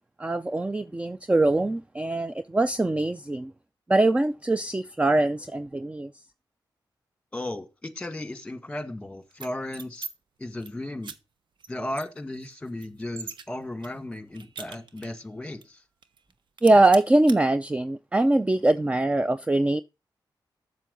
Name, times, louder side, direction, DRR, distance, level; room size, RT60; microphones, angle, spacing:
voice 1, 0.2-3.5 3.9-6.1 16.6-19.8, right 2 dB, 15° right, 0.4 m, -22 dB
voice 2, 7.3-10.1 10.4-11.1 11.7-15.8, left 1 dB, 15° left, 1.7 m, -35 dB
sound 1, 9.3-10.1 10.4-10.7 11.0-11.2 11.6-11.7 12.0-13.4 13.8-15.2 15.6-15.7 16.0-16.3 16.6-17.4, right 5 dB, 75° right, 0.9 m, -41 dB
7.5 x 7.2 x 5.2 m
cardioid pair, 75°, 8 cm